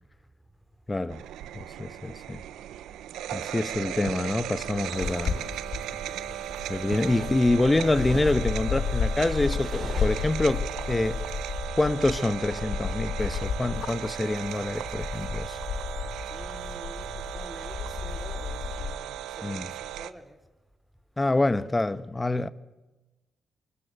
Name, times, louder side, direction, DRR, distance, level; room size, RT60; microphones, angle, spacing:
voice 1, 0.9-1.2 1.5-2.4 3.3-5.4 6.7-11.2 11.8-15.6 19.4-19.7 21.2-22.5, left 2 dB, 20° left, 1.3 m, -26 dB
sound 1, 1.1-20.1, right 11 dB, 80° right, 1.0 m, -37 dB
sound 2, 4.6-18.9, left 6 dB, 65° left, 1.6 m, -33 dB
sound 3, 5.0-11.6, right 3 dB, 40° right, 7.1 m, -46 dB
voice 2, 16.3-20.4, right 1 dB, 5° right, 3.6 m, -47 dB
24.5 x 23.0 x 9.0 m
supercardioid pair, 55°, 0 cm